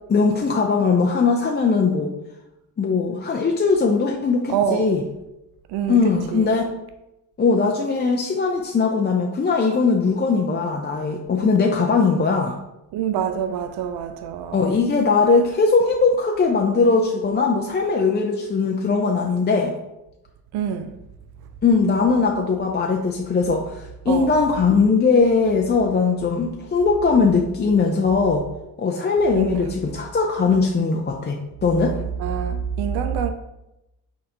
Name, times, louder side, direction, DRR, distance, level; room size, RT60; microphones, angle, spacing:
voice 1, 0.1-2.1 2.8-5.0 5.9-6.7 7.4-12.6 14.5-19.7 21.6-28.5 28.8-32.0, left 4 dB, 25° left, 0.5 m, -20 dB
voice 2, 4.5-4.9 5.7-6.6 12.9-14.8 20.5-20.9 24.1-24.3 29.4-29.7 32.2-33.3, right 8 dB, 65° right, 0.5 m, -26 dB
4.2 x 3.8 x 2.8 m
supercardioid pair, 45°, 43 cm